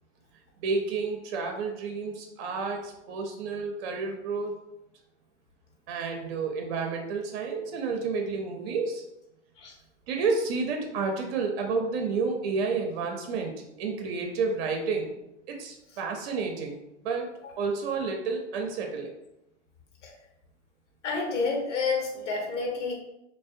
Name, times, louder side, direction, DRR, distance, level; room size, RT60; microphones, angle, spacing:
voice 1, 0.6-4.5 5.9-9.0 10.1-13.5 13.8-15.1 15.5-17.3 17.6-19.1, right 4 dB, 55° right, 3 dB, 0.5 m, -30 dB
voice 2, 21.0-22.9, left 4 dB, 75° left, 0 dB, 1.0 m, -29 dB
2.5 x 2.1 x 2.5 m, 0.89 s
hypercardioid pair, 125°, 36 cm